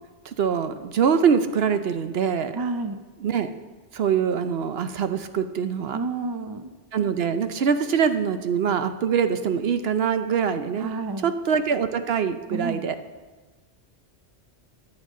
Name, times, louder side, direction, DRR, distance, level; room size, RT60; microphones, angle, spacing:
voice 1, 0.2-2.5 3.2-3.5 3.9-6.0 6.9-10.9 11.2-13.0, right 7 dB, 65° right, 9 dB, 0.9 m, -24 dB
voice 2, 2.6-3.0 5.9-6.7 10.8-11.3 12.5-12.9, right 3 dB, 30° right, 9 dB, 0.5 m, -30 dB
14.0 x 9.6 x 3.7 m, 1.3 s
omnidirectional pair, 1.2 m